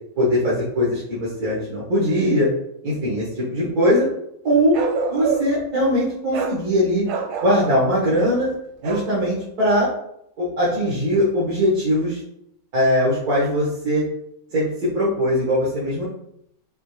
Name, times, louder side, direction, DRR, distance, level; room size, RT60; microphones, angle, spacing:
voice 1, 0.2-2.5 2.8-4.1 4.4-4.8 5.1-7.0 7.4-8.5 8.8-9.9 10.4-12.2 12.7-14.0 14.5-16.0, equal, 50° right, -9 dB, 1.9 m, -20 dB
Bark, 4.7-5.6 6.3-6.6 7.0-7.8 8.8-9.1, right 5 dB, 85° right, 1.5 m, -26 dB
6.2 x 2.5 x 3.2 m, 0.75 s
omnidirectional pair, 2.1 m